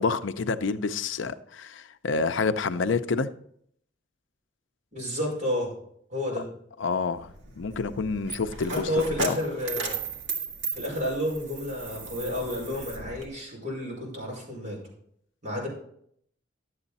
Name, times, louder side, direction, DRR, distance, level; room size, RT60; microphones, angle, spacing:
voice 1, 0.0-3.3 6.8-7.3 7.6-8.9 9.2-9.4, left 4 dB, 80° left, 0.6 m, -28 dB
voice 2, 4.9-5.7 6.1-6.4 8.7-10.0 10.7-14.8 15.4-15.7, left 1 dB, 40° right, 5.4 m, -30 dB
Coin (dropping), 7.1-13.3, right 4 dB, 75° right, 1.8 m, -36 dB
11.5 x 8.1 x 4.1 m
head